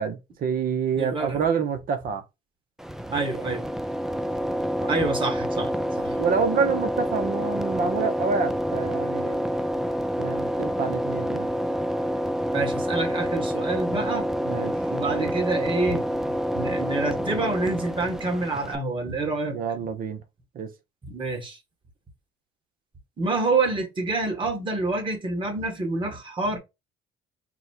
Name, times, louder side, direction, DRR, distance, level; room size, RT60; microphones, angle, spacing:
voice 1, 0.0-2.2 4.8-4.9 6.2-9.4 10.2-11.5 14.4-14.8 19.5-20.2 20.5-20.7, right 6 dB, 60° right, 0.8 m, -27 dB
voice 2, 1.0-1.4 3.1-3.6 4.9-5.7 6.0-6.1 12.5-14.3 14.9-16.0 16.5-19.6 21.1-21.6 23.2-26.6, right 3 dB, 30° right, 1.5 m, -27 dB
sound 1, 2.8-18.8, equal, 5° right, 0.3 m, -28 dB
4.0 x 2.2 x 4.3 m
cardioid pair, 110°, 17 cm